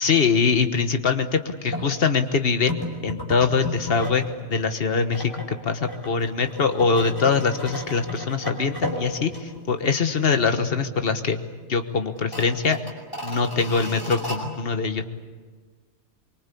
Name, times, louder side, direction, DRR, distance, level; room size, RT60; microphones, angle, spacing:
voice 1, 0.0-2.8 3.0-4.2 4.5-11.4 11.7-12.8 13.2-15.0, left 5 dB, 55° left, 8 dB, 1.6 m, -23 dB
sound 1, 1.7-1.9 2.7-4.3 4.6-9.9 10.2-10.3 10.7-11.2 11.5-11.6 12.2-14.4, equal, 20° left, 5.1 m, -34 dB
24.5 x 24.0 x 8.5 m, 1.4 s
omnidirectional pair, 1.2 m